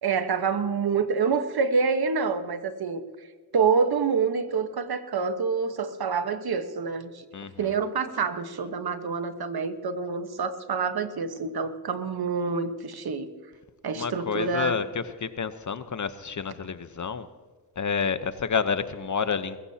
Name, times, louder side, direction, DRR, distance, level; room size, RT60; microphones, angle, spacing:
voice 1, 0.0-3.0 3.5-7.2 7.6-13.3 13.8-14.8, right 5 dB, 60° right, 9 dB, 1.3 m, -27 dB
voice 2, 14.0-17.3 17.8-19.6, left 6 dB, 45° left, 12 dB, 0.9 m, -29 dB
22.5 x 15.0 x 2.9 m, 1.5 s
cardioid pair, 70°, 41 cm